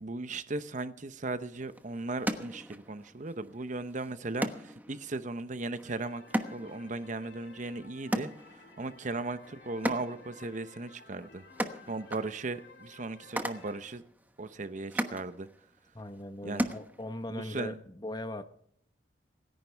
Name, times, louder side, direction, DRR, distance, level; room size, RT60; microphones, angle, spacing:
voice 1, 0.0-6.2 6.5-8.3 8.8-11.4 11.9-14.0 14.4-15.5 16.4-16.7 17.3-17.8, right 2 dB, 40° right, 12 dB, 0.8 m, -37 dB
sound 1, 1.3-17.4, right 1 dB, 10° right, 1.1 m, -39 dB
sound 2, 5.8-13.8, left 3 dB, 65° left, 4.4 m, -55 dB
voice 2, 15.9-18.4, left 1 dB, 25° left, 9 dB, 1.1 m, -39 dB
27.0 x 10.5 x 3.4 m, 0.65 s
head